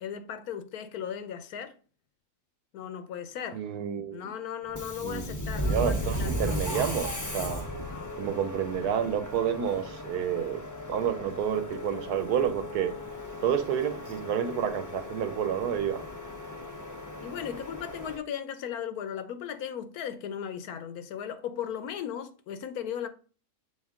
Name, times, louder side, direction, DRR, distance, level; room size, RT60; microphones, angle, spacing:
voice 1, 0.0-1.7 2.7-3.6 4.1-6.3 7.9-8.1 17.2-23.1, left 9 dB, 75° left, 1.2 m, -37 dB
voice 2, 3.5-4.3 5.0-7.6 8.1-10.6 10.9-12.9 13.4-16.0, right 8 dB, 80° right, 1.3 m, -30 dB
Subway metro underground, 4.7-18.2, equal, 20° left, 0.6 m, -36 dB
6.5 x 4.3 x 3.6 m
omnidirectional pair, 1.6 m